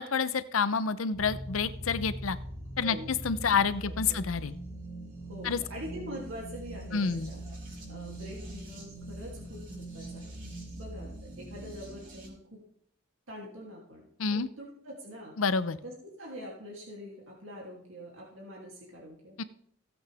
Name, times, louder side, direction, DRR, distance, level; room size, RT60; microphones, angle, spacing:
voice 1, 0.0-2.4 2.8-4.5 5.4-5.6 6.9-7.3 14.2-14.5 15.4-15.8 19.4-19.5, left 5 dB, 85° left, 14 dB, 0.7 m, -28 dB
sound 1, 1.1-12.3, right 1 dB, 40° right, 3.9 m, -42 dB
voice 2, 2.8-3.1 3.8-4.3 5.3-7.4 7.9-10.3 10.8-12.6 13.3-15.4 15.8-19.4, equal, 75° right, -3 dB, 2.9 m, -44 dB
17.0 x 8.0 x 3.5 m, 0.68 s
head